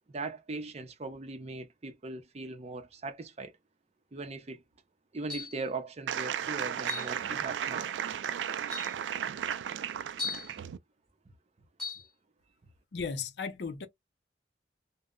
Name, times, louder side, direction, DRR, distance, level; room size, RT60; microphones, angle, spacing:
voice 1, 0.1-3.5 4.1-4.6 5.1-7.9, right 3 dB, 35° right, 0.5 m, -39 dB
sound 1, 5.3-5.7 6.9-7.2 8.1-8.2 8.7-9.0 10.2-10.5 11.8-12.1, left 4 dB, 5° left, 0.8 m, -38 dB
sound 2, 6.1-10.8, right 9 dB, 90° right, 0.3 m, -34 dB
voice 2, 12.9-13.9, left 5 dB, 70° left, 0.5 m, -35 dB
2.0 x 2.0 x 3.6 m
head